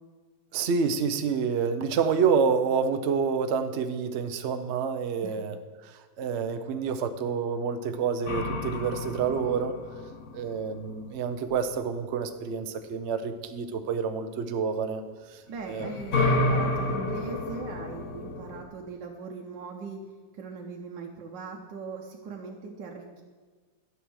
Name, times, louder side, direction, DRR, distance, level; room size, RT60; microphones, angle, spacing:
voice 1, 0.5-5.6 5.8-9.8 10.3-15.0 15.3-15.4 15.7-15.9, right 6 dB, 55° right, 8 dB, 0.8 m, -28 dB
sound 1, 8.3-12.0 15.5-18.6, left 2 dB, 50° left, 1.4 m, -30 dB
voice 2, 15.5-20.0 20.3-23.2, right 4 dB, 75° right, 0 dB, 1.6 m, -40 dB
12.5 x 7.3 x 6.4 m, 1.4 s
omnidirectional pair, 2.0 m